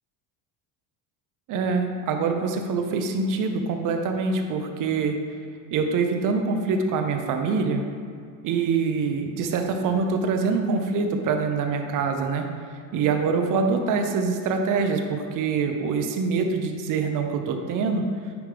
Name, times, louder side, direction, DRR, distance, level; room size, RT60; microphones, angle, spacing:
voice 1, 1.5-5.2 5.7-7.8 8.4-12.5 12.9-18.0, right 4 dB, 40° right, 5 dB, 0.7 m, -25 dB
9.4 x 5.1 x 3.4 m, 2.2 s
cardioid pair, 150°, 47 cm